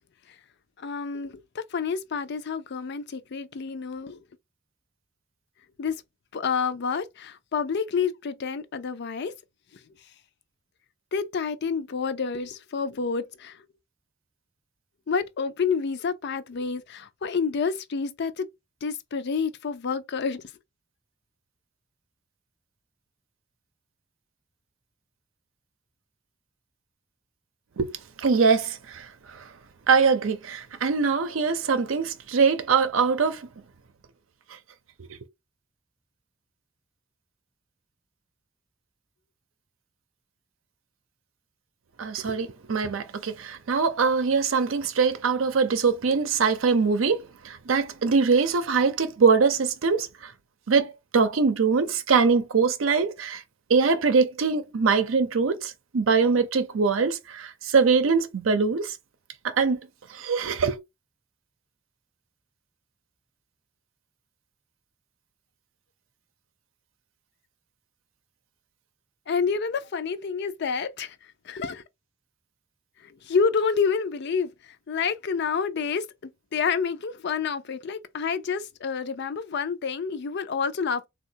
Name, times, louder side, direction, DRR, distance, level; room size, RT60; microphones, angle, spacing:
voice 1, 0.8-4.2 5.8-6.0 6.3-9.3 11.1-13.7 15.1-18.5 18.8-20.5 69.3-71.2 71.4-71.8 73.0-81.1, left 5 dB, 55° left, 0.5 m, -28 dB
voice 2, 28.2-29.1 29.9-33.5 35.1-35.2 42.0-47.2 47.4-50.1 50.7-53.4 53.7-58.9 59.4-59.8 60.1-60.8, right 5 dB, 75° right, 0.6 m, -23 dB
3.6 x 2.3 x 2.7 m
head